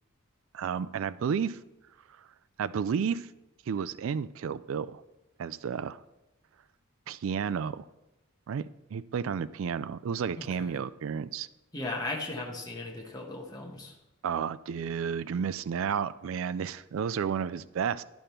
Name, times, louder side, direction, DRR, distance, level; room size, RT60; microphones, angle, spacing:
voice 1, 0.5-1.6 2.6-3.3 3.7-5.0 5.4-6.0 7.1-7.8 8.5-11.5 14.2-18.0, right 7 dB, 65° right, 15 dB, 0.3 m, -32 dB
voice 2, 10.4-10.8 11.7-14.0, left 2 dB, 20° left, -1 dB, 1.2 m, -37 dB
11.5 x 5.1 x 4.4 m, 0.97 s
head